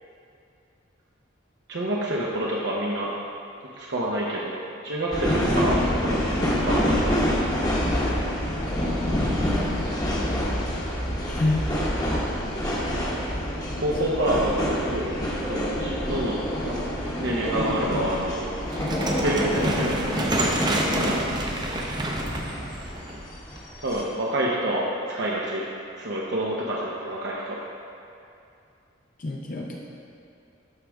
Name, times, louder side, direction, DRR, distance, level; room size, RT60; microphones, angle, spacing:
voice 1, 1.7-3.1 3.8-4.6 4.8-7.5 13.8-16.9 17.2-18.5 19.2-19.9 20.9-21.4 23.8-25.6 26.0-27.6, right 1 dB, 65° right, -5 dB, 0.8 m, -28 dB
sound 1, 5.1-24.0, equal, 20° left, 1.0 m, -27 dB
voice 2, 11.3-11.6 13.7-13.8 14.1-14.2 29.2-29.9, left 2 dB, 40° left, -1 dB, 0.5 m, -28 dB
sound 2, 18.7-23.9, right 1 dB, 20° right, 0.6 m, -28 dB
12.5 x 4.9 x 3.4 m, 2.6 s
head